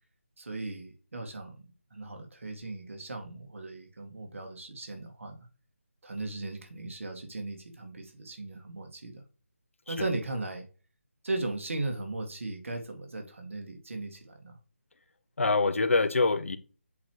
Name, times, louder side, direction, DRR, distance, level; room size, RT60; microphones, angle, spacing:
voice 1, 0.4-5.5 6.0-9.2 9.9-10.7 11.2-14.6, right 2 dB, 70° right, 1.9 m, -37 dB
voice 2, 15.4-16.6, left 3 dB, 75° left, 0.8 m, -25 dB
8.2 x 3.0 x 4.7 m
figure-of-eight pair, 175°, 7 cm